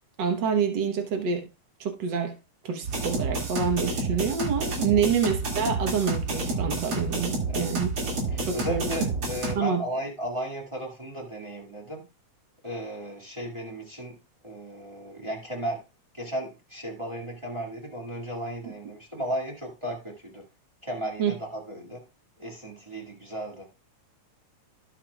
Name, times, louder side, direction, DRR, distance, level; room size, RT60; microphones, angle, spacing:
voice 1, 0.2-1.5 1.8-2.3 2.6-7.9 8.4-8.9 9.6-9.8 21.2-21.3, right 6 dB, 80° right, 1.0 m, -27 dB
sound 1, 2.8-9.5, right 3 dB, 45° right, 3.0 m, -29 dB
voice 2, 8.0-12.1 12.6-14.2 14.4-15.8 16.1-20.4 20.8-22.0 22.4-23.6, equal, 15° right, 1.3 m, -35 dB
17.0 x 5.8 x 2.3 m
omnidirectional pair, 3.7 m